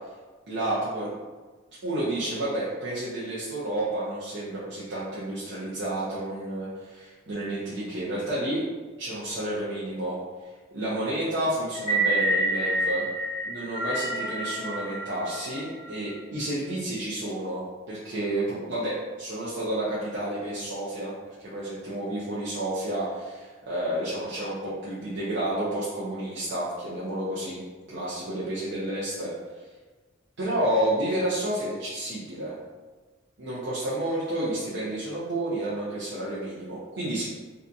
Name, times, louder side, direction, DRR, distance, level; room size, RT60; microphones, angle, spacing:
voice 1, 0.5-1.1 1.8-8.6 9.0-10.2 10.7-13.1 13.4-27.6 27.9-29.3 30.4-32.5 33.4-37.2, right 1 dB, 60° right, -9 dB, 0.5 m, -30 dB
sound 1, 11.7-16.1, right 1 dB, 20° right, 0.7 m, -28 dB
2.6 x 2.6 x 2.3 m, 1.3 s
head